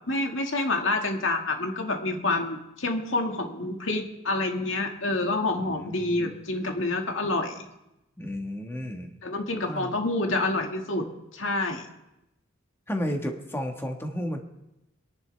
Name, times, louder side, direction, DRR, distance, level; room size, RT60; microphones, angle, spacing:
voice 1, 0.1-7.7 9.2-11.1 11.3-11.9, left 2 dB, 75° left, 3 dB, 1.9 m, -28 dB
voice 2, 5.6-6.4 8.2-9.1 9.7-9.9 12.9-14.4, equal, 10° left, 3 dB, 1.5 m, -33 dB
24.0 x 11.0 x 3.4 m, 0.90 s
head